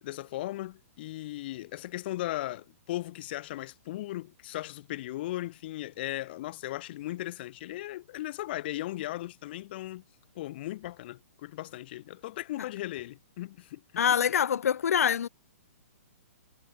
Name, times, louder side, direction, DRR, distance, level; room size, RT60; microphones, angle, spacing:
voice 1, 0.0-10.0 10.3-14.0, left 16 dB, 40° left, 2.9 m, -37 dB
voice 2, 14.0-15.3, left 8 dB, 70° left, 1.9 m, -25 dB
hypercardioid pair, 160°, 8 cm